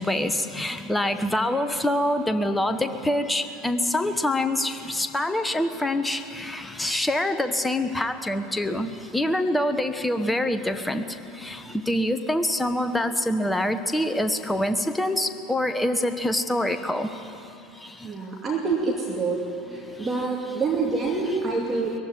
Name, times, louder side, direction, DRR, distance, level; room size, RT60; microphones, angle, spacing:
voice 1, 0.0-17.2 17.8-18.1 20.0-20.2 21.6-21.8, left 1 dB, 5° left, 9 dB, 1.3 m, -26 dB
voice 2, 18.0-19.4 19.7-21.9, right 4 dB, 20° right, -2 dB, 2.7 m, -26 dB
21.5 x 15.0 x 9.9 m, 2.8 s
figure-of-eight pair, 75°, 0 cm